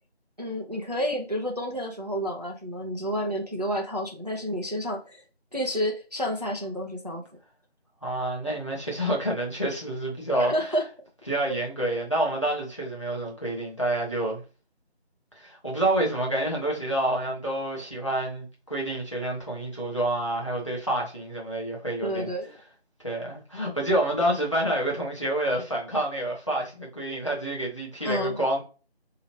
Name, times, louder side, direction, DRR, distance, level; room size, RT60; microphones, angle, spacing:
voice 1, 0.4-5.2 5.5-7.2 10.5-10.9 22.0-22.5 28.0-28.4, equal, 40° right, 0.5 m, -30 dB
voice 2, 8.0-10.5 11.3-14.4 15.4-22.3 23.0-28.6, right 1 dB, 30° left, 1.0 m, -28 dB
4.6 x 2.8 x 3.0 m
figure-of-eight pair, 175°, 33 cm